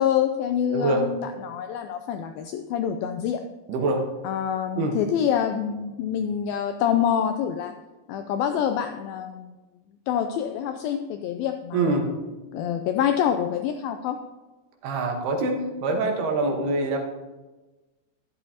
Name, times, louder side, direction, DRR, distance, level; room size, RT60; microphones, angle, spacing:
voice 1, 0.0-3.4 4.2-7.7 8.1-9.6 10.1-12.2 12.5-14.2, left 9 dB, 90° left, 7 dB, 2.1 m, -26 dB
voice 2, 0.7-1.1 3.7-4.1 4.8-5.0 11.7-12.1 14.8-17.0, right 2 dB, 75° right, 2 dB, 3.1 m, -24 dB
13.0 x 11.0 x 2.8 m, 1.2 s
omnidirectional pair, 4.7 m